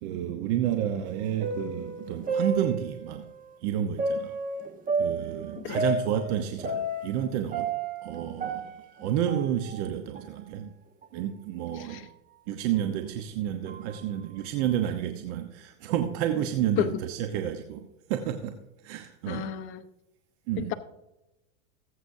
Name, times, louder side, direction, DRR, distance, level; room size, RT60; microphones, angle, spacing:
voice 1, 0.0-3.2 3.6-4.4 5.0-7.7 8.0-8.7 9.0-10.7 11.1-12.1 12.5-18.6 18.8-19.5 20.5-20.7, right 10 dB, 60° right, 1.1 m, -30 dB
sound 1, 1.0-3.2 4.0-7.2 7.5-9.9 10.1-10.2 11.0-11.1 11.9-12.1 12.7-12.8 13.7-14.0, right 3 dB, 20° right, 1.3 m, -32 dB
voice 2, 11.7-12.1 16.8-17.0 19.3-19.9 20.6-20.7, left 12 dB, 35° left, 0.6 m, -32 dB
19.5 x 8.2 x 2.7 m
supercardioid pair, 120°, 37 cm